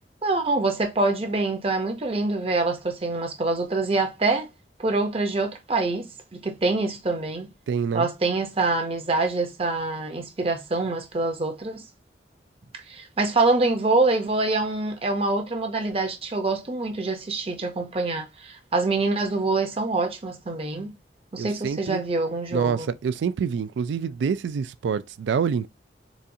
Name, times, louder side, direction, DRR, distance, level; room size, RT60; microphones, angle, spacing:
voice 1, 0.2-4.5 4.8-7.5 7.9-11.8 12.9-21.0 21.3-22.9, right 3 dB, 35° right, 0.6 m, -25 dB
voice 2, 7.7-8.1 21.4-22.0 22.5-25.7, right 6 dB, 90° right, 0.3 m, -26 dB
4.1 x 2.4 x 2.6 m
head